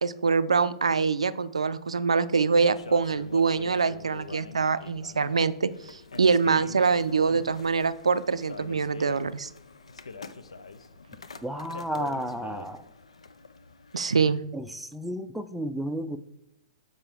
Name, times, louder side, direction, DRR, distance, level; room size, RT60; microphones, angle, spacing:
voice 1, 0.0-9.5 13.9-14.4, right 5 dB, 80° right, 14 dB, 0.4 m, -24 dB
sound 1, 2.6-14.4, left 4 dB, 80° left, 0.5 m, -44 dB
voice 2, 11.4-12.8 14.5-16.2, equal, ahead, 8 dB, 0.4 m, -32 dB
7.3 x 5.2 x 3.5 m, 0.80 s
figure-of-eight pair, 110°, 3 cm